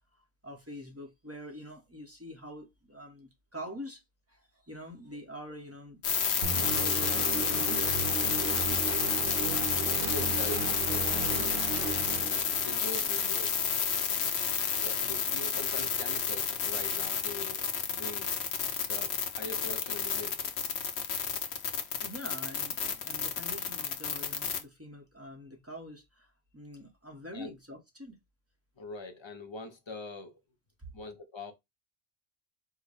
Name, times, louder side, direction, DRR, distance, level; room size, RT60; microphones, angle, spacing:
voice 1, 0.4-4.0 4.3-8.0 22.0-28.2, equal, 15° right, 0.9 m, -45 dB
sound 1, 6.0-24.6, left 7 dB, 80° left, 1.0 m, -30 dB
sound 2, 6.4-12.9, right 5 dB, 65° right, 1.0 m, -35 dB
voice 2, 9.9-11.6 12.6-13.6 14.7-18.4 18.8-20.5 27.3-27.6 28.8-30.4 30.9-31.5, left 2 dB, 30° left, 0.7 m, -43 dB
4.9 x 2.2 x 4.0 m
omnidirectional pair, 1.1 m